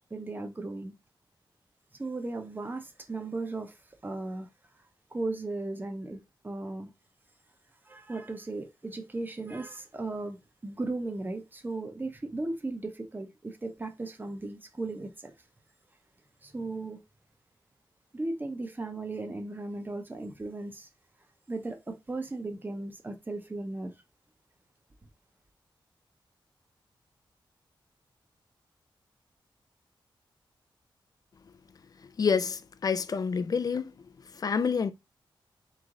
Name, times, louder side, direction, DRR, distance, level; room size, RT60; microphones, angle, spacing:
voice 1, 0.1-0.9 2.0-3.7 4.0-4.5 5.1-6.9 7.9-10.4 10.6-15.3 16.4-17.0 18.1-20.9 21.5-23.9, right 2 dB, 20° right, 0.7 m, -36 dB
voice 2, 32.2-33.9 34.3-34.9, left 6 dB, 45° left, 0.4 m, -28 dB
3.7 x 3.1 x 3.7 m
wide cardioid pair, 130°, 9 cm